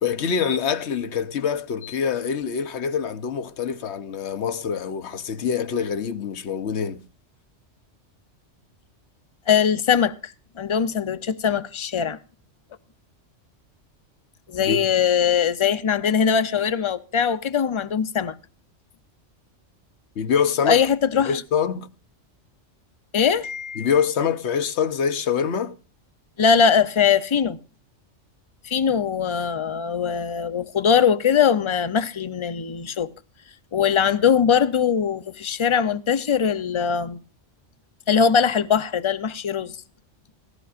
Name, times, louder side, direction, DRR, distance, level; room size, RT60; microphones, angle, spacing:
voice 1, 0.0-7.0 14.7-14.8 20.2-20.8 21.3-21.9 23.8-25.7, left 7 dB, 70° left, 1.1 m, -25 dB
voice 2, 9.5-12.2 14.5-18.4 20.6-21.4 23.1-24.0 26.4-27.6 28.6-33.1 33.7-37.2 38.1-39.8, left 7 dB, 35° left, 0.5 m, -21 dB
18.0 x 15.0 x 2.5 m
omnidirectional pair, 1.2 m